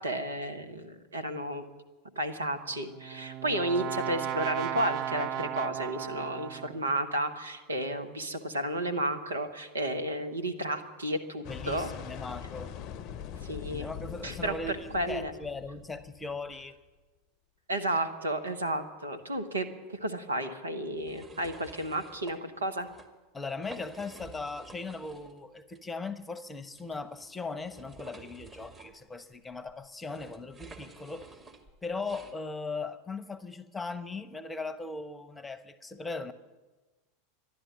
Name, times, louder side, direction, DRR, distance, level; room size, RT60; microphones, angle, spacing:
voice 1, 0.0-1.6 2.1-11.9 13.5-13.9 14.2-15.3 17.7-22.9, right 1 dB, 80° right, 8 dB, 1.4 m, -32 dB
Brass instrument, 2.7-6.9, right 10 dB, 45° right, 0.5 m, -35 dB
sound 1, 11.4-16.6, left 8 dB, 45° left, 0.7 m, -42 dB
voice 2, 11.5-12.7 13.7-16.7 23.3-31.3 31.8-36.3, left 3 dB, 15° left, 14 dB, 1.0 m, -38 dB
sound 2, 21.0-22.4 22.8-23.1 23.5-25.4 25.7-25.8 26.8-32.4, right 3 dB, 20° right, 2.0 m, -51 dB
12.5 x 11.5 x 9.5 m, 1.2 s
figure-of-eight pair, 85°, 0 cm